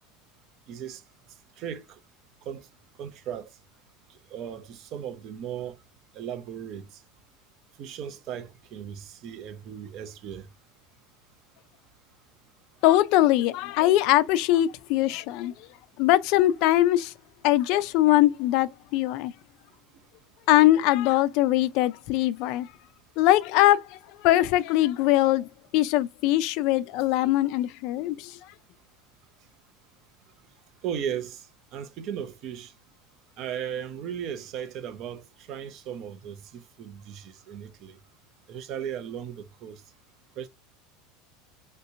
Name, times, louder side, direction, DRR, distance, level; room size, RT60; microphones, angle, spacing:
voice 1, 0.7-1.0 1.6-2.0 2.4-2.7 3.0-3.5 4.1-5.8 6.1-7.0 7.8-10.5 30.8-31.5 31.7-32.7 33.4-38.0 38.5-39.8 40.4-40.5, right 9 dB, 40° right, 0.5 m, -36 dB
voice 2, 12.8-15.5 16.0-17.1 17.4-19.3 20.5-22.7 23.2-25.5 25.7-28.4, left 15 dB, 50° left, 0.3 m, -22 dB
3.2 x 2.9 x 2.7 m
supercardioid pair, 160°, 0 cm